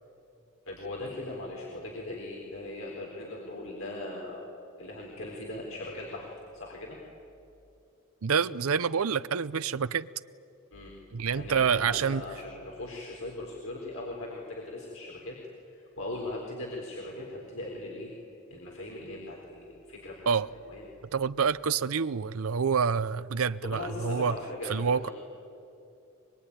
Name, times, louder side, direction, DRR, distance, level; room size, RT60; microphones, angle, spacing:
voice 1, 0.6-4.4 4.8-7.0 10.7-10.9 11.3-15.4 15.7-18.1 18.5-20.9 23.6-25.1, left 2 dB, 70° left, 4.1 m, -39 dB
voice 2, 8.2-10.1 11.1-12.2 20.3-20.5 21.1-24.3 24.7-25.1, right 6 dB, 85° right, 0.6 m, -27 dB
23.5 x 22.5 x 10.0 m
head